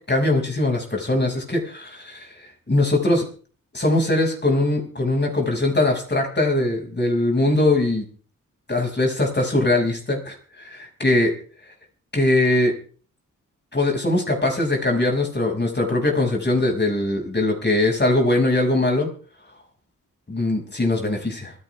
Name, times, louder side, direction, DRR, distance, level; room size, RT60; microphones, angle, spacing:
voice 1, 0.1-3.2 3.7-8.0 8.7-11.3 12.1-12.7 13.7-19.1 20.3-21.5, left 2 dB, 30° left, 1 dB, 6.2 m, -21 dB
25.5 x 11.0 x 3.5 m, 0.42 s
cardioid pair, 50°, 33 cm